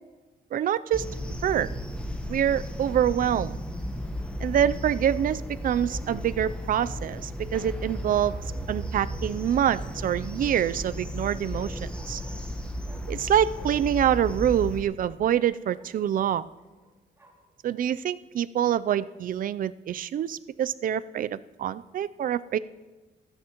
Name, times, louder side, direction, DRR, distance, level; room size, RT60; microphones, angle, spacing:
voice 1, 0.5-1.1 1.4-1.7 2.3-3.6 4.4-8.3 8.7-12.2 13.1-16.5 17.6-22.6, right 10 dB, 55° right, 16 dB, 0.4 m, -26 dB
sound 1, 0.9-14.8, equal, 5° left, 1.1 m, -34 dB
Bark, 2.5-3.2 5.6-6.7 8.1-9.0 9.6-10.7 11.5-13.2 13.5-15.9 16.6-17.5, right 1 dB, 15° right, 2.4 m, -55 dB
27.0 x 9.9 x 2.9 m, 1.3 s
wide cardioid pair, 140°, 17 cm